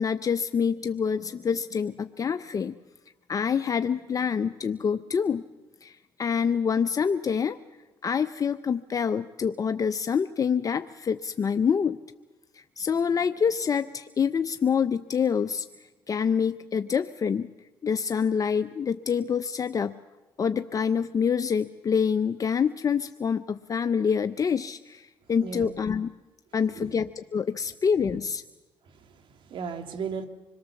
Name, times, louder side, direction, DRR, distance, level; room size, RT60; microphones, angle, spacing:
voice 1, 0.0-2.7 3.3-5.4 5.8-7.6 8.0-12.0 12.5-15.6 16.1-17.5 17.8-20.0 20.4-26.1 26.5-28.4, left 6 dB, 40° left, 11 dB, 0.7 m, -26 dB
voice 2, 25.4-25.7 26.8-26.9 29.1-30.3, right 5 dB, 65° right, 8 dB, 2.1 m, -35 dB
26.0 x 22.0 x 7.2 m, 1.1 s
cardioid pair, 85°, 9 cm